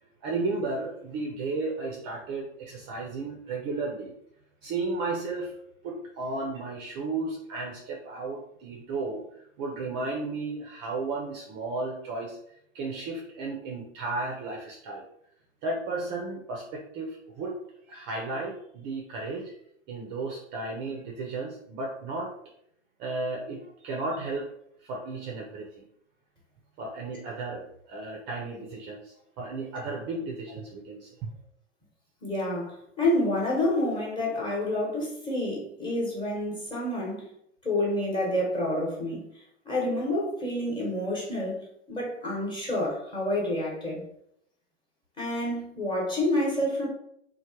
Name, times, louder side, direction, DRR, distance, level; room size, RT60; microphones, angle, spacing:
voice 1, 0.2-4.1 4.6-5.5 5.8-9.2 9.6-12.4 12.7-15.0 15.6-17.6 17.9-19.5 19.9-22.3 23.0-24.5 24.8-25.9 26.8-31.3, right 3 dB, 30° right, 0 dB, 0.5 m, -34 dB
voice 2, 32.2-37.3 37.6-39.2 39.6-44.0 45.2-46.9, left 1 dB, 15° left, -3 dB, 1.0 m, -28 dB
3.0 x 2.1 x 2.9 m, 0.71 s
hypercardioid pair, 110°, 36 cm